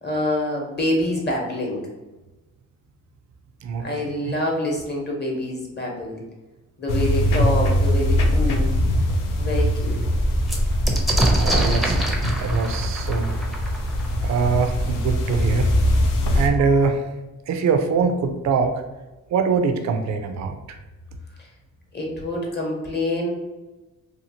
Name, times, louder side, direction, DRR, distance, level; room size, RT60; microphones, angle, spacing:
voice 1, 0.0-1.9 3.8-6.2 6.8-8.7 9.4-10.0 21.4-21.5 21.9-23.3, left 1 dB, 30° left, -1 dB, 0.9 m, -26 dB
voice 2, 3.6-4.1 11.4-13.4 14.2-15.7 16.3-17.0 17.5-18.8 19.3-20.8, right 5 dB, 55° right, 6 dB, 0.4 m, -23 dB
sound 1, 6.9-16.5, equal, 85° left, 0.5 m, -22 dB
sound 2, 8.4-8.5 9.0-9.1 9.4-14.9 15.9-16.0 16.2-16.8, right 1 dB, ahead, 0.5 m, -25 dB
2.8 x 2.4 x 2.7 m, 1.1 s
cardioid pair, 80°, 33 cm